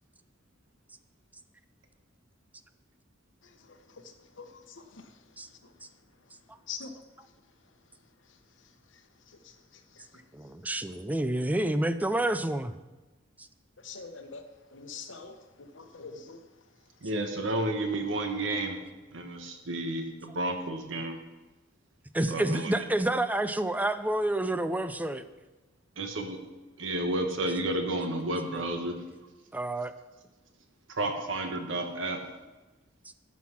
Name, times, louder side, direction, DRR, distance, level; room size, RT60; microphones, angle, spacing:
voice 1, 10.3-12.7 22.1-25.2 29.5-29.9, right 1 dB, 10° right, 11 dB, 0.4 m, -28 dB
voice 2, 13.8-14.4 14.7-16.4, left 5 dB, 75° left, 6 dB, 1.0 m, -42 dB
voice 3, 17.0-18.8 19.1-21.2 22.3-22.8 26.0-26.4 26.8-29.0 30.9-32.2, right 1 dB, 80° right, 4 dB, 1.2 m, -31 dB
13.0 x 6.1 x 5.8 m, 1.1 s
head